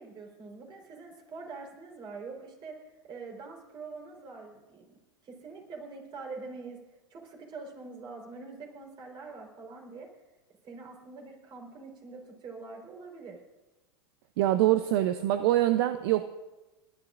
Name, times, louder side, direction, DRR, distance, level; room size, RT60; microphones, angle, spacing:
voice 1, 0.0-4.8 5.2-6.8 7.1-10.1 10.6-13.4, right 4 dB, 35° right, 1 dB, 4.3 m, -44 dB
voice 2, 14.4-16.2, right 14 dB, 65° right, 10 dB, 0.7 m, -24 dB
29.5 x 11.5 x 2.6 m, 1.1 s
hypercardioid pair, 105°, 13 cm